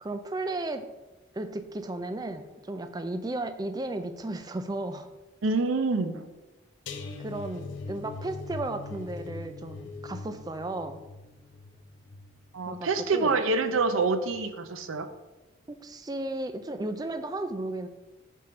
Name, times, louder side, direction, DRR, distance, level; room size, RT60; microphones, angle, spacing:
voice 1, 0.0-0.9 1.3-5.1 7.2-11.0 12.7-13.4 15.7-17.9, right 2 dB, 20° right, 9 dB, 0.4 m, -34 dB
voice 2, 5.4-6.3 12.5-15.1, right 3 dB, 85° right, 9 dB, 0.6 m, -26 dB
sound 1, 6.9-13.9 14.3-14.6 14.9-15.0, left 3 dB, 70° left, 0.6 m, -42 dB
7.8 x 3.7 x 4.3 m, 1.1 s
head